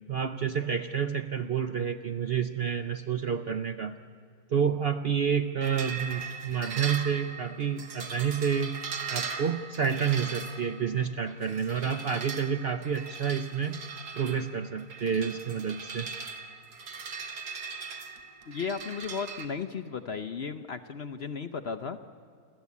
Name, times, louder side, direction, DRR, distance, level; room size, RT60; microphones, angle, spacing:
voice 1, 0.1-4.0 4.5-8.8 9.1-13.8 14.2-16.1, right 7 dB, 55° right, 9 dB, 0.7 m, -29 dB
sound 1, 5.6-19.4, right 5 dB, 80° right, 1.9 m, -39 dB
voice 2, 18.5-22.0, left 5 dB, 55° left, 10 dB, 0.8 m, -35 dB
28.5 x 13.5 x 8.3 m, 2.3 s
omnidirectional pair, 1.7 m